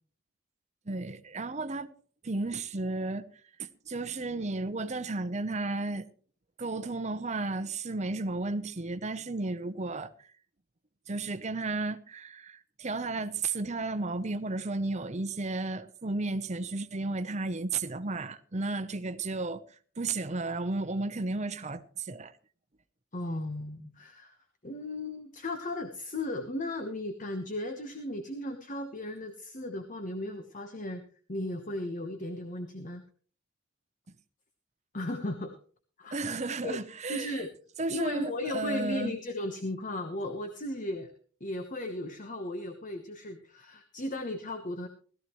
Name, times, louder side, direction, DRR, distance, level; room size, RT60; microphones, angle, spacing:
voice 1, 0.9-1.9 2.2-3.2 3.6-6.1 6.6-10.1 11.1-19.6 20.0-22.3 36.1-37.5 37.8-39.1, right 3 dB, 35° right, 0.8 m, -33 dB
voice 2, 23.1-24.4 24.6-31.0 31.3-33.0 34.9-35.6 36.0-36.3 36.6-36.8 37.1-37.5 37.9-41.1 41.4-44.9, left 1 dB, 40° left, 1.1 m, -36 dB
17.0 x 13.5 x 3.1 m
head